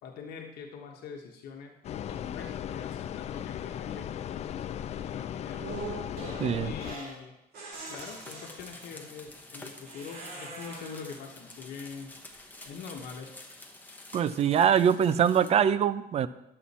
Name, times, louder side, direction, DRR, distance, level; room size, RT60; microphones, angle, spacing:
voice 1, 0.0-1.7 2.1-5.6 6.6-7.4 7.9-12.2 12.6-13.4, left 6 dB, 80° left, 1 dB, 1.1 m, -44 dB
sound 1, 1.8-7.0, left 10 dB, 45° left, 0.4 m, -37 dB
sound 2, 5.6-7.2 7.5-9.0 9.8-11.3, right 3 dB, 70° right, 3.8 m, -42 dB
voice 2, 6.4-6.7 14.1-16.3, right 8 dB, 40° right, 14 dB, 0.4 m, -23 dB
sound 3, 7.7-15.5, left 2 dB, 10° left, 1.1 m, -49 dB
11.0 x 7.7 x 4.2 m, 0.89 s
cardioid pair, 145°, 16 cm